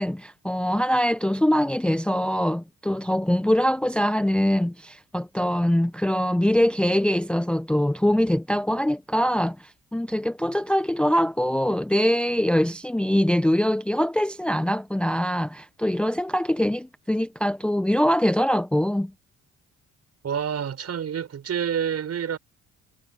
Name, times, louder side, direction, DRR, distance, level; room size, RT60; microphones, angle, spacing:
voice 1, 0.0-19.1, equal, 5° left, 0.6 m, -23 dB
voice 2, 20.2-22.4, right 8 dB, 55° right, 5.7 m, -28 dB
cardioid pair, 90°, 30 cm